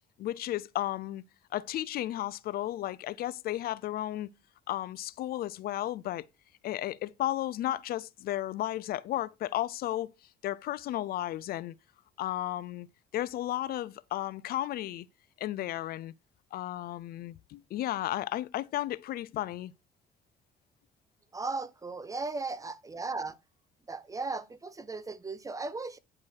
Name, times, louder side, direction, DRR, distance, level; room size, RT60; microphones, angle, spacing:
voice 1, 0.2-1.2 1.5-4.3 4.7-6.3 6.6-10.1 10.4-11.7 12.2-12.9 13.1-15.0 15.4-16.1 16.5-19.7, left 14 dB, 65° left, 0.5 m, -33 dB
voice 2, 21.3-23.4 23.9-26.0, right 3 dB, 20° right, 0.8 m, -36 dB
9.8 x 4.6 x 4.7 m
cardioid pair, 110°, 17 cm